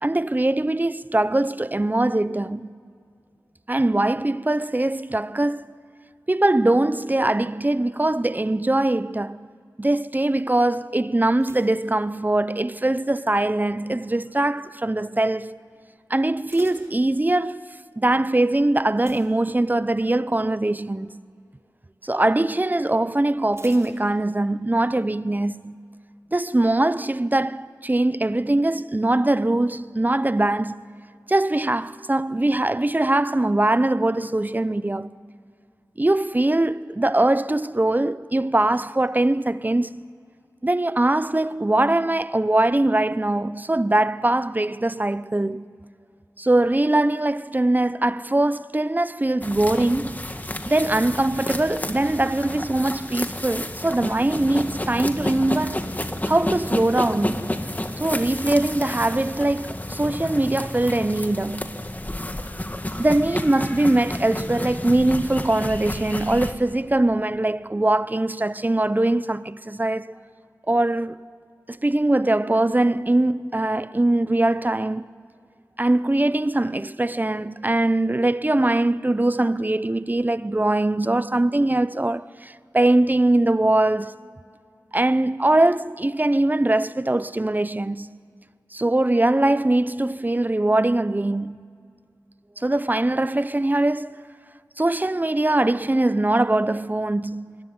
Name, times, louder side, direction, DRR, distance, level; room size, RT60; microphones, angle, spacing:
voice 1, 0.0-2.7 3.7-5.7 6.3-9.5 9.8-15.6 16.1-17.7 18.0-21.2 22.0-25.7 26.3-30.8 31.3-35.1 36.0-40.0 40.6-45.7 46.4-50.3 50.6-55.8 56.2-57.5 58.0-61.8 63.0-70.1 70.7-71.2 71.7-75.0 75.8-84.2 84.9-88.1 88.7-91.6 92.6-94.2 94.8-97.6, right 2 dB, 25° right, 0.7 m, -22 dB
sound 1, 11.4-12.9 13.1-13.6 14.2-14.6 14.9-15.0 15.4-15.5 16.1-17.7 18.9-20.1 20.5-20.7 21.1-21.2 23.5-24.7 25.0-25.1, right 2 dB, 45° right, 3.5 m, -48 dB
sound 2, 49.4-66.5, left 1 dB, 25° left, 1.9 m, -31 dB
28.0 x 21.5 x 9.5 m
wide cardioid pair, 50°, 7 cm